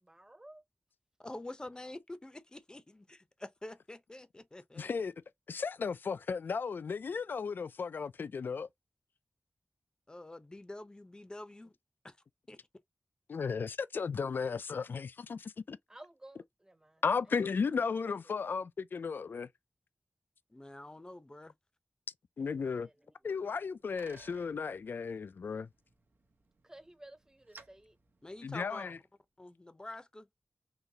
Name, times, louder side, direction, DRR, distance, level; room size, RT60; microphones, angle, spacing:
voice 1, 0.0-0.6 15.9-17.0 18.2-18.4 22.4-23.1 26.6-28.0, right 1 dB, 15° right, 0.6 m, -55 dB
voice 2, 1.2-4.9 10.1-11.8 12.0-12.2 12.5-12.7 13.3-13.4 20.5-21.5 28.2-29.0 29.4-30.3, left 1 dB, 25° left, 0.7 m, -47 dB
voice 3, 4.8-5.1 5.5-8.7 13.3-15.8 17.0-19.5 22.4-22.9 23.2-25.7 28.4-29.0, left 5 dB, 75° left, 0.3 m, -35 dB
Bicycle, 23.4-29.0, right 3 dB, 70° right, 1.0 m, -61 dB
4.0 x 3.1 x 2.7 m
wide cardioid pair, 90°, 4 cm